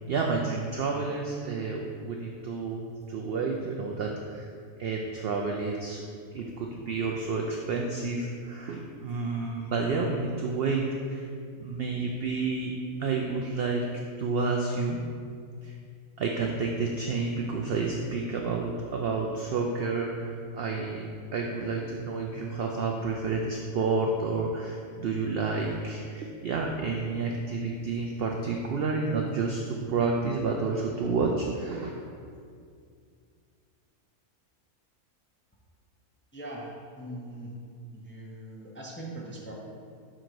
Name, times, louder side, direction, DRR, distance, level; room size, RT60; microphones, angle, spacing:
voice 1, 0.1-4.5 4.8-6.0 6.3-11.3 11.6-12.7 13.0-13.9 14.2-15.0 15.6-15.7 16.2-21.1 21.3-32.1, right 4 dB, 80° right, 1 dB, 0.5 m, -30 dB
voice 2, 36.3-37.5 37.9-39.5, right 1 dB, 15° left, -4 dB, 0.4 m, -41 dB
6.2 x 3.8 x 4.6 m, 2.2 s
omnidirectional pair, 1.6 m